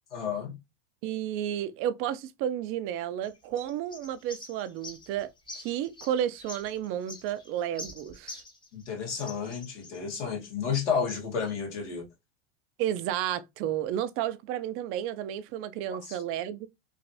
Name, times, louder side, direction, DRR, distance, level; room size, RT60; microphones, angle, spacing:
voice 1, 0.1-0.6 8.7-12.1 15.9-16.2, left 6 dB, 85° left, 1.6 m, -31 dB
voice 2, 1.0-5.3 5.5-8.4 12.8-16.7, right 11 dB, 40° right, 0.4 m, -32 dB
sound 1, 3.2-8.8 9.1-10.0, left 2 dB, 15° left, 0.8 m, -45 dB
3.1 x 2.6 x 2.6 m
hypercardioid pair, 115°, 34 cm